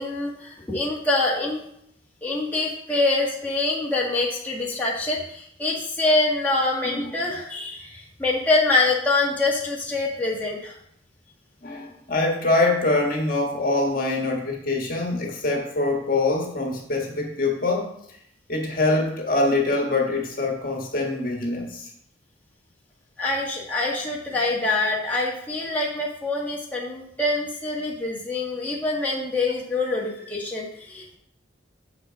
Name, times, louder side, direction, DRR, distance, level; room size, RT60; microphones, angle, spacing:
voice 1, 0.0-1.6 2.2-10.7 23.2-31.2, left 2 dB, 10° left, -4 dB, 1.7 m, -25 dB
voice 2, 11.6-17.9 18.5-21.9, left 2 dB, 50° left, 0 dB, 1.6 m, -24 dB
7.6 x 6.0 x 5.1 m, 0.71 s
head